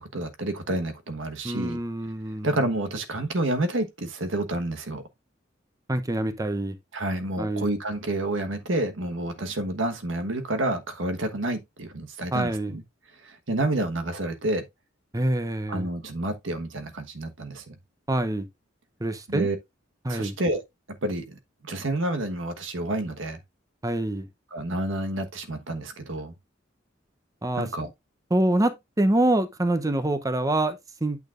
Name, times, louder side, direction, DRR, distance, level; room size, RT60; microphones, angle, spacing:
voice 1, 0.0-1.8 2.4-5.0 6.9-12.8 13.2-14.6 15.7-17.7 19.3-19.6 20.1-20.6 21.0-23.4 24.5-26.3 27.5-27.9, right 1 dB, 90° right, 1.3 m, -29 dB
voice 2, 1.4-2.6 5.9-6.8 7.4-7.7 12.3-12.7 15.1-15.9 18.1-18.5 19.0-19.5 20.0-20.4 23.8-24.3 27.4-27.7 28.3-31.2, right 1 dB, 20° right, 0.7 m, -25 dB
8.7 x 6.9 x 2.5 m
head